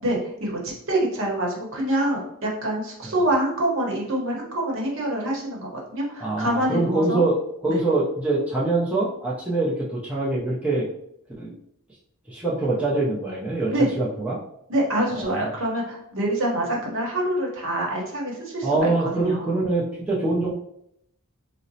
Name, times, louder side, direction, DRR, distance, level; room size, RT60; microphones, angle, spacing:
voice 1, 0.0-7.2 7.6-7.8 13.7-13.9 14.7-19.6, right 1 dB, 60° right, -2 dB, 0.9 m, -26 dB
voice 2, 6.2-7.4 7.6-10.9 11.4-11.5 12.3-14.4 15.1-15.5 18.6-20.5, right 2 dB, 5° right, -7 dB, 0.5 m, -24 dB
3.9 x 2.0 x 2.6 m, 0.75 s
head